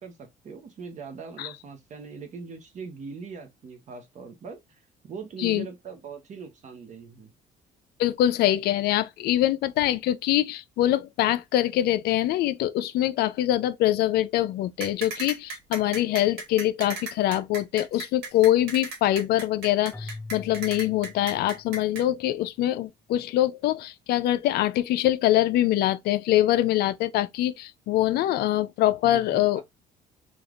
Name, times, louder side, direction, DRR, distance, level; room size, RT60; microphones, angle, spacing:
voice 1, 0.0-7.3 29.0-29.6, right 5 dB, 45° right, 0.8 m, -41 dB
voice 2, 8.0-29.6, left 13 dB, 70° left, 0.4 m, -24 dB
sound 1, 14.8-22.0, right 3 dB, 80° right, 1.5 m, -36 dB
Keyboard (musical), 19.9-22.2, left 2 dB, 10° left, 0.4 m, -43 dB
3.3 x 2.4 x 2.4 m
cardioid pair, 110°, 17 cm